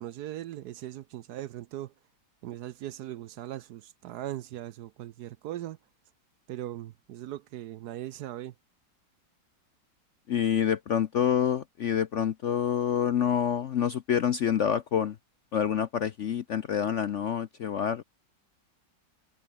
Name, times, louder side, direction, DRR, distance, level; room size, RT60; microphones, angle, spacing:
voice 1, 0.0-1.9 2.4-5.8 6.5-8.5, right 13 dB, 70° right, 1.1 m, -39 dB
voice 2, 10.3-15.2 15.5-18.0, left 8 dB, 60° left, 0.8 m, -27 dB
omnidirectional pair, 2.0 m